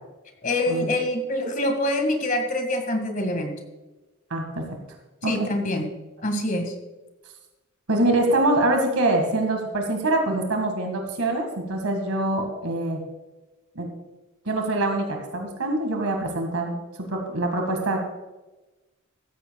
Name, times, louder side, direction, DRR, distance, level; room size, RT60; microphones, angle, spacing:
voice 1, 0.4-3.6 5.2-5.9 6.2-6.7, left 1 dB, 40° left, 5 dB, 2.0 m, -25 dB
voice 2, 4.3-4.6 5.2-5.5 7.9-13.0 13.8-13.9 14.5-16.8 17.1-18.0, right 2 dB, 85° right, 3 dB, 2.0 m, -24 dB
16.0 x 13.5 x 2.4 m, 1.1 s
head